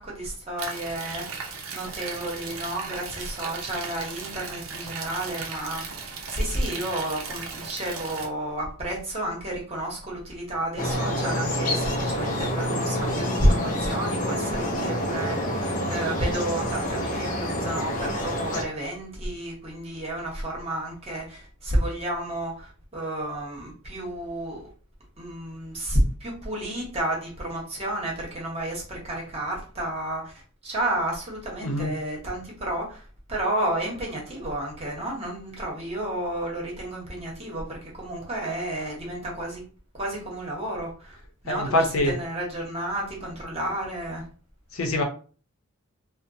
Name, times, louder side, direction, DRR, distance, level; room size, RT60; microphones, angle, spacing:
voice 1, 0.0-1.4 1.7-24.7 25.2-39.6 39.9-41.2 41.4-44.3, right 1 dB, 30° right, -3 dB, 1.0 m, -31 dB
sound 1, 0.6-8.3, right 5 dB, 75° right, 0.6 m, -37 dB
sound 2, 10.8-18.6, equal, 40° left, 0.5 m, -27 dB
voice 2, 41.5-42.1 44.7-45.0, left 1 dB, 85° left, 4 dB, 0.7 m, -24 dB
2.8 x 2.1 x 2.6 m, 0.39 s
head